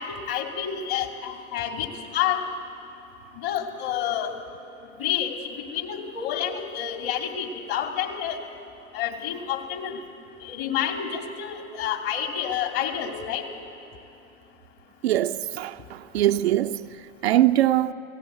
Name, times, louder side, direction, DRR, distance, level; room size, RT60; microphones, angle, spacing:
voice 1, 0.0-1.9 2.1-2.4 3.4-4.3 5.0-5.3 5.7-8.4 8.9-10.0 10.4-13.5, left 9 dB, 45° left, 2.9 m, -29 dB
voice 2, 15.0-16.9 17.2-17.9, right 13 dB, 55° right, 0.6 m, -22 dB
29.5 x 17.5 x 8.2 m
figure-of-eight pair, 100°, 39 cm